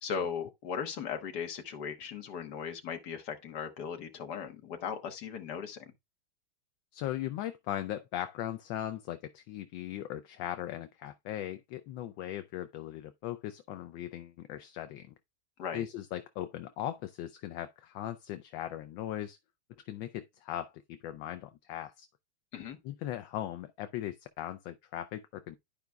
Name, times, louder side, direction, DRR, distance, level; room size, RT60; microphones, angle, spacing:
voice 1, 0.0-5.9 15.6-15.9 22.5-22.8, left 7 dB, 60° left, 1.6 m, -38 dB
voice 2, 6.9-15.1 15.7-19.4 19.9-22.1 22.8-25.6, left 12 dB, 80° left, 1.3 m, -38 dB
12.0 x 4.9 x 2.2 m
omnidirectional pair, 2.1 m